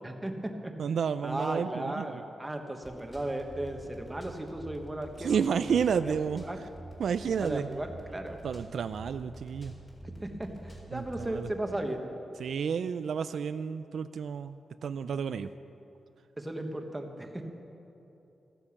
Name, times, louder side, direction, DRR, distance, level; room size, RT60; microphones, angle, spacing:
voice 1, 0.0-0.7 1.2-6.1 6.4-6.6 7.4-8.5 10.2-12.0 16.4-17.5, right 1 dB, 15° right, 4 dB, 1.2 m, -36 dB
voice 2, 0.8-2.2 5.2-6.4 7.0-7.7 8.4-9.7 10.9-11.5 12.4-14.6 14.8-15.5, right 7 dB, 75° right, 12 dB, 0.3 m, -31 dB
sound 1, 2.8-11.5, right 1 dB, 20° left, 2.5 m, -47 dB
14.5 x 9.9 x 7.1 m, 2.9 s
wide cardioid pair, 150°, 0 cm